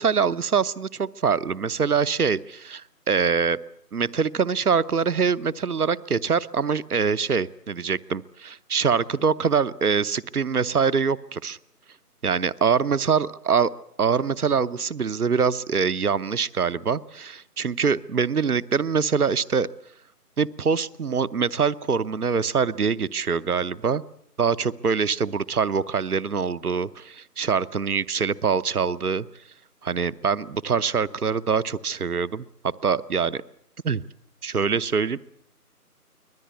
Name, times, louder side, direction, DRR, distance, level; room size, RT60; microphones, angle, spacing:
voice 1, 0.0-3.6 3.9-11.6 12.2-13.7 14.0-19.7 20.4-24.0 24.4-29.3 29.8-32.4 32.8-33.4 33.8-34.0 34.4-35.2, right 6 dB, 70° right, 18 dB, 0.9 m, -24 dB
24.5 x 18.0 x 8.2 m, 0.67 s
figure-of-eight pair, 170°, 46 cm